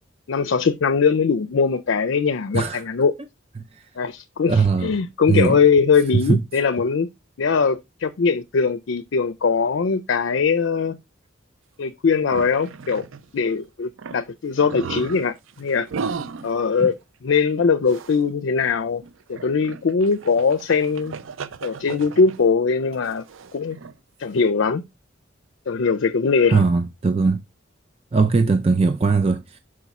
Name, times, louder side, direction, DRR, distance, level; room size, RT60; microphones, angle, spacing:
voice 1, 0.3-3.1 4.0-7.1 7.4-11.0 11.8-13.0 13.3-15.9 16.4-16.9 17.2-19.0 19.3-21.2 21.6-23.2 23.5-23.8 24.2-24.8 25.7-26.6, left 5 dB, 70° left, 0.4 m, -21 dB
voice 2, 4.5-4.9 5.3-5.6 6.1-6.4 26.5-27.4 28.1-29.6, right 4 dB, 30° right, 0.4 m, -19 dB
sound 1, 12.3-13.3 13.6-13.7 14.0-14.2 14.6-16.6 17.9-18.2 18.6-18.7 19.0-22.4 22.9-23.9, right 5 dB, 80° right, 0.5 m, -35 dB
5.9 x 4.8 x 4.0 m
head